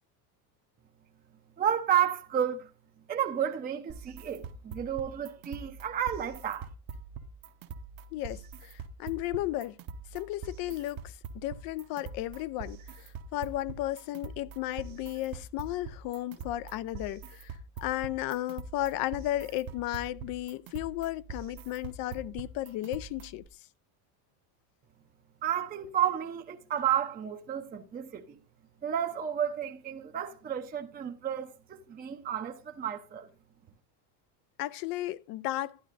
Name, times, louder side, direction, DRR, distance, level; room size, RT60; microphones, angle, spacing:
voice 1, 1.6-2.7 3.1-6.7 25.4-28.4 28.8-33.3, right 9 dB, 20° right, 0.6 m, -31 dB
sound 1, 3.9-23.5, right 5 dB, 45° right, 0.9 m, -44 dB
voice 2, 8.1-9.8 10.1-23.4 34.6-35.8, left 15 dB, 50° left, 0.5 m, -34 dB
11.5 x 11.0 x 2.5 m
supercardioid pair, 130°, 47 cm